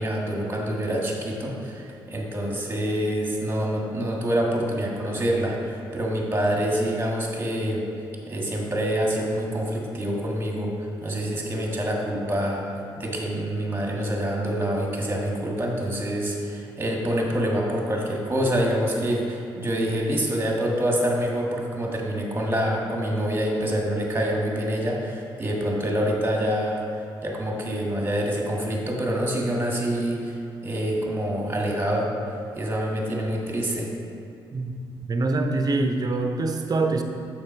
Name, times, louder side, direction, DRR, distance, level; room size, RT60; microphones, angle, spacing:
voice 1, 0.0-7.8 8.3-10.7 11.0-12.7 13.0-30.4 30.6-32.1 32.5-33.9, equal, 20° right, -1 dB, 1.7 m, -26 dB
voice 2, 35.1-37.0, right 3 dB, 40° right, 5 dB, 0.7 m, -24 dB
6.6 x 5.4 x 4.4 m, 2.5 s
supercardioid pair, 60°, 10 cm